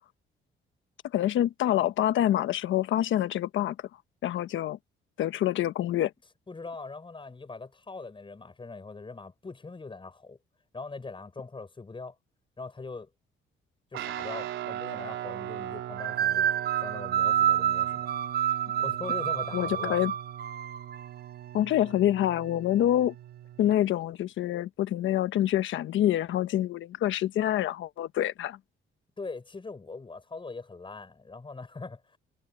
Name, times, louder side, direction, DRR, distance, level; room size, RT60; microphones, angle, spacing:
voice 1, 1.1-3.8 4.2-4.8 5.2-6.1 19.5-20.1 21.5-23.1 23.6-28.6, left 12 dB, 80° left, 1.2 m, -26 dB
voice 2, 6.5-10.4 10.7-12.2 12.6-13.1 13.9-16.5 16.8-18.1 18.8-20.0 29.2-32.2, left 3 dB, 25° left, 6.2 m, -41 dB
Guitar, 13.9-23.8, right 12 dB, 85° right, 3.8 m, -40 dB
sound 1, 16.0-21.1, right 10 dB, 50° right, 0.9 m, -28 dB
cardioid pair, 90°, 20 cm